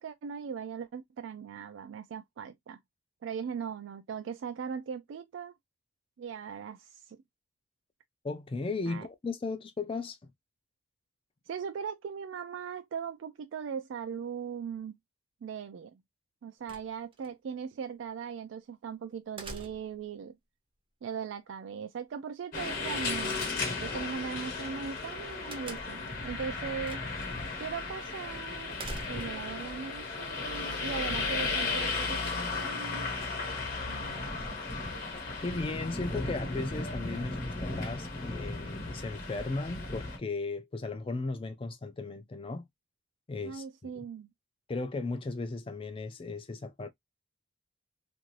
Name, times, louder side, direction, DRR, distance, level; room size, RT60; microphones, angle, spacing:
voice 1, 0.0-2.8 3.2-5.5 6.2-7.2 8.9-9.1 11.5-15.0 15.4-16.0 16.4-20.4 21.0-27.0 27.6-28.8 29.1-33.1 33.9-34.3 43.4-44.3, right 6 dB, 75° right, 0.3 m, -39 dB
voice 2, 8.2-10.3 35.1-42.6 43.3-44.0 44.7-46.9, left 3 dB, 30° left, 0.4 m, -36 dB
sound 1, 16.7-17.3 19.4-20.1 23.1-23.8 25.5-26.1 26.8-27.3 27.6-27.7 28.8-29.5, right 2 dB, 25° right, 0.5 m, -44 dB
sound 2, 22.5-40.2, left 3 dB, 45° left, 1.0 m, -35 dB
2.6 x 2.5 x 3.0 m
head